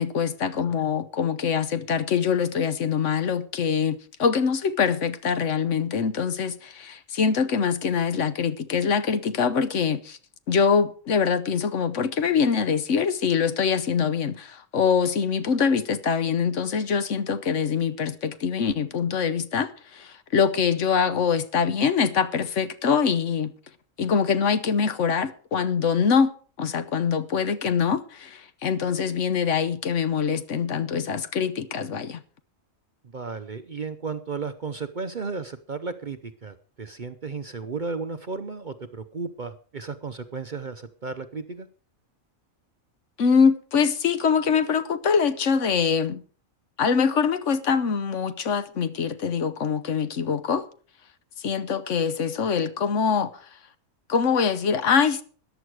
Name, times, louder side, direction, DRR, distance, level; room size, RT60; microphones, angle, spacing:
voice 1, 0.0-10.2 10.5-23.5 24.0-26.3 26.6-32.2 43.2-46.2 46.8-50.6 51.4-53.3 54.1-55.2, left 6 dB, 60° left, 1.2 m, -24 dB
voice 2, 33.1-41.7, right 4 dB, 45° right, 0.7 m, -34 dB
14.0 x 10.5 x 4.8 m
omnidirectional pair, 1.5 m